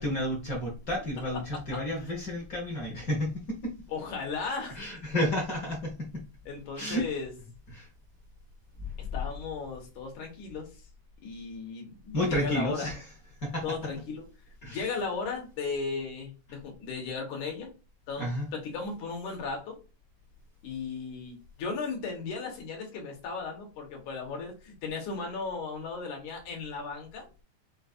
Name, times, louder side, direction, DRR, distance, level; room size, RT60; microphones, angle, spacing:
voice 1, 0.0-3.7 4.7-6.2 6.8-7.0 7.7-7.9 12.1-13.0 13.4-13.8 14.6-14.8 18.2-18.5, equal, 50° left, -1 dB, 1.0 m, -31 dB
voice 2, 1.5-2.1 3.9-4.8 6.5-7.3 9.0-10.7 11.2-12.9 13.6-14.3 14.7-17.7 18.1-19.8 20.6-27.3, left 4 dB, 75° left, 1 dB, 2.9 m, -36 dB
7.5 x 2.7 x 2.5 m, 0.31 s
omnidirectional pair, 3.4 m